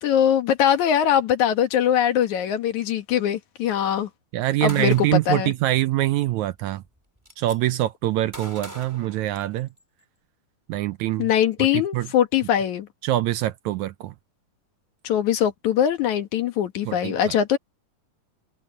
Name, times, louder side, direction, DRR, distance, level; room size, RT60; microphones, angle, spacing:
voice 1, 0.0-4.1 4.6-5.5 11.2-12.9 15.0-17.6, left 10 dB, 65° left, 2.8 m, -22 dB
voice 2, 4.3-6.8 7.4-9.7 10.7-11.3 11.9-12.1 13.0-14.1 16.9-17.3, right 15 dB, 75° right, 1.8 m, -24 dB
Gunshot gunfire, 4.7-5.3 6.5-6.6 6.9-7.6 8.3-9.8, equal, 5° right, 5.3 m, -42 dB
omnidirectional pair, 3.7 m